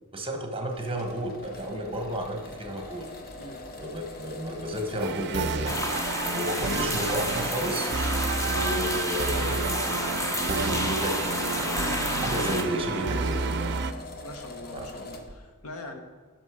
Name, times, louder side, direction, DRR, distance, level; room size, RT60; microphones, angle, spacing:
voice 1, 0.1-3.1 3.8-6.0 6.3-7.9 8.4-10.0 10.3-13.7 14.7-14.9, equal, 25° right, 4 dB, 1.2 m, -32 dB
sound 1, 0.7-15.4, left 2 dB, 45° left, 1.0 m, -42 dB
sound 2, 5.0-13.9, right 4 dB, 50° right, 0.5 m, -30 dB
sound 3, 5.7-12.6, left 1 dB, 15° left, 0.8 m, -31 dB
voice 2, 14.2-16.0, left 2 dB, 70° left, 5 dB, 1.1 m, -42 dB
10.5 x 6.1 x 4.9 m, 1.5 s
head